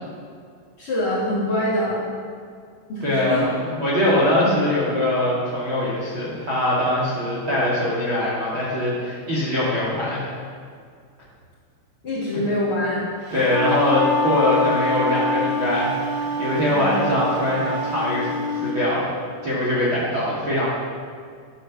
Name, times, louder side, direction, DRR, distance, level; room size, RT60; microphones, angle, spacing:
voice 1, 0.8-2.0 2.9-3.4 12.0-13.0 16.7-16.9, left 1 dB, 30° left, -7 dB, 3.4 m, -24 dB
voice 2, 3.0-3.5 3.7-10.3 12.3-12.4 13.3-19.1 19.4-20.7, left 1 dB, 35° right, -7 dB, 2.5 m, -22 dB
Wind instrument woodwind instrument, 13.3-18.7, left 1 dB, 50° right, 1.2 m, -25 dB
13.5 x 9.8 x 7.3 m, 2.1 s
omnidirectional pair, 5.5 m